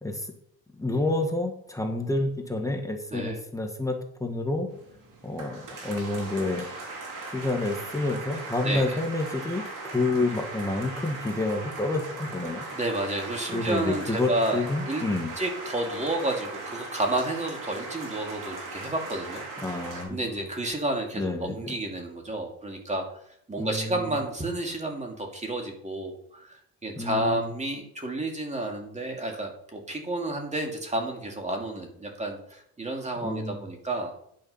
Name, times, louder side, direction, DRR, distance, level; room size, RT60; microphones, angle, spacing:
voice 1, 0.0-0.3 0.7-4.7 5.2-6.7 7.3-12.6 13.5-15.3 19.6-20.4 21.2-21.7 23.6-24.1 27.0-27.5 33.2-33.6, left 2 dB, 10° left, 3 dB, 1.6 m, -29 dB
sound 1, 4.7-20.1, right 3 dB, 60° right, 3.5 m, -39 dB
voice 2, 12.7-15.0 15.4-19.4 20.1-23.2 23.5-34.2, right 1 dB, 20° right, 2 dB, 2.6 m, -31 dB
10.5 x 6.6 x 5.7 m, 0.72 s
cardioid pair, 100°, 36 cm